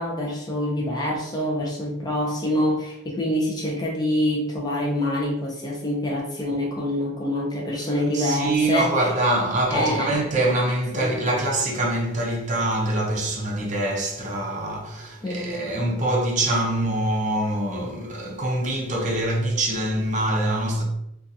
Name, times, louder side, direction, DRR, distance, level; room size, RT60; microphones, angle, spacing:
voice 1, 0.0-9.1 9.7-10.2 10.9-11.2 15.2-15.8, left 1 dB, 20° left, 0.4 m, -26 dB
voice 2, 8.1-20.8, right 1 dB, 35° right, 0.6 m, -24 dB
2.7 x 2.3 x 2.5 m
head